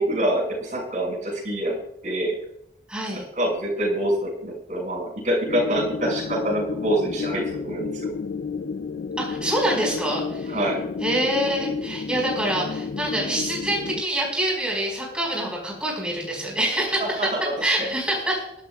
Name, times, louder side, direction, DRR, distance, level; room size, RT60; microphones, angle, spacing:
voice 1, 0.0-1.8 2.0-2.4 3.1-8.1 10.5-10.8 17.0-17.9, right 1 dB, 45° right, -1 dB, 5.8 m, -26 dB
voice 2, 2.9-3.3 9.2-10.6 11.0-17.3 17.6-18.5, right 1 dB, 5° right, -2 dB, 4.7 m, -26 dB
sound 1, 5.5-14.0, left 5 dB, 55° left, 0.4 m, -31 dB
23.5 x 13.0 x 2.3 m, 0.76 s
head